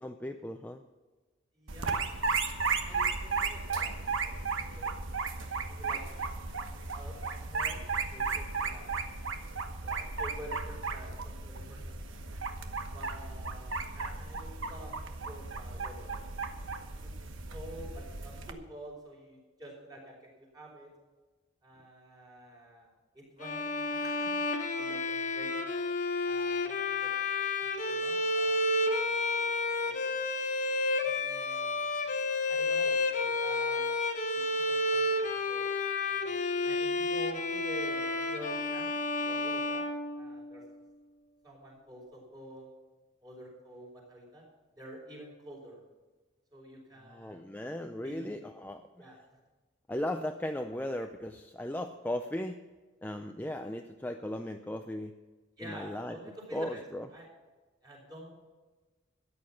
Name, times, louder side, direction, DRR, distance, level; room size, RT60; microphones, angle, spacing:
voice 1, 0.0-0.8 47.0-49.1 49.9-52.6 53.0-55.1 55.6-56.2 56.5-57.1, left 1 dB, 10° left, 5 dB, 0.5 m, -37 dB
voice 2, 1.5-4.4 4.7-6.0 6.4-7.8 8.1-9.2 9.8-12.0 12.9-14.9 15.2-16.7 17.0-17.1 17.4-20.9 21.6-22.9 23.1-24.3 24.7-25.6 26.2-30.0 31.0-32.1 32.5-34.0 34.3-35.8 36.1-36.3 36.6-39.9 40.1-40.6 41.4-42.7 43.2-44.4 44.8-45.8 46.5-47.4 48.0-48.3 49.0-49.2 55.6-56.8 57.1-57.3 57.8-58.3, right 1 dB, 20° right, -2 dB, 4.9 m, -49 dB
sound 1, 1.7-18.5, right 4 dB, 85° right, 1.2 m, -35 dB
Bowed string instrument, 23.4-40.6, left 2 dB, 40° left, 1.2 m, -31 dB
14.0 x 9.7 x 5.9 m, 1.3 s
head